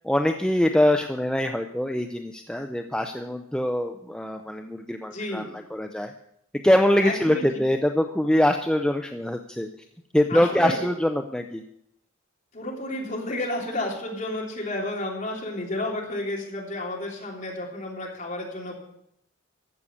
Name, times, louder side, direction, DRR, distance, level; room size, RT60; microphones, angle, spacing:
voice 1, 0.0-5.5 5.7-6.1 6.6-9.7 10.1-11.6, left 1 dB, 5° left, 5 dB, 0.5 m, -23 dB
voice 2, 5.1-5.5 7.0-7.4 10.3-10.9 12.5-18.8, left 1 dB, 40° left, -2 dB, 3.3 m, -31 dB
14.5 x 6.5 x 8.4 m, 0.76 s
head